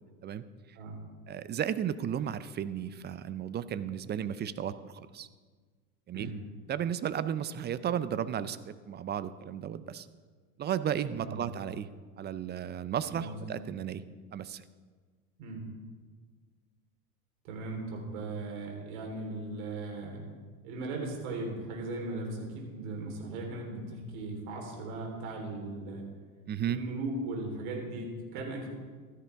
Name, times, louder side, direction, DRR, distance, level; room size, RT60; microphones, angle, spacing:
voice 1, 1.3-5.3 6.1-6.3 6.7-10.1 10.6-11.9 12.2-14.0 14.3-14.6 26.5-26.8, right 9 dB, 25° right, 14 dB, 0.5 m, -34 dB
voice 2, 11.1-11.4 13.0-13.4 15.4-15.7 17.4-20.2 20.6-26.0 26.7-28.7, right 2 dB, 65° right, 1 dB, 3.9 m, -38 dB
15.5 x 13.0 x 3.5 m, 1.5 s
hypercardioid pair, 90°, 45 cm